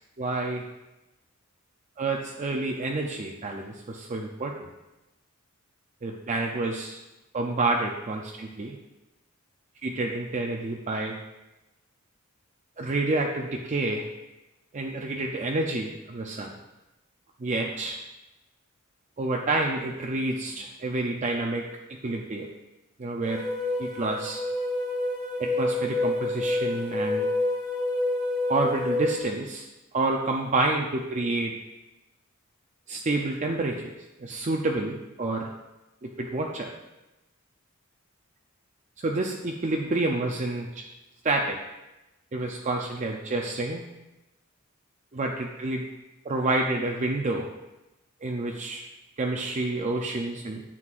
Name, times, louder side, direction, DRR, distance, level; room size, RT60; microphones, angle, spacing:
voice 1, 0.2-0.6 2.0-4.7 6.0-7.0 7.3-8.8 9.8-11.2 12.8-14.1 14.7-16.5 17.4-18.0 19.2-21.6 21.9-22.5 23.0-23.4 23.8-24.4 25.4-27.3 28.5-29.7 29.9-31.5 32.9-33.9 34.2-35.5 36.0-36.7 39.0-40.8 41.2-41.6 42.3-43.8 45.1-45.8 46.2-47.5 48.2-48.9 49.2-50.6, right 2 dB, 35° right, 1 dB, 0.5 m, -28 dB
sound 1, 23.2-29.2, left 2 dB, 25° left, 2.2 m, -28 dB
9.5 x 7.7 x 2.5 m, 1.0 s
head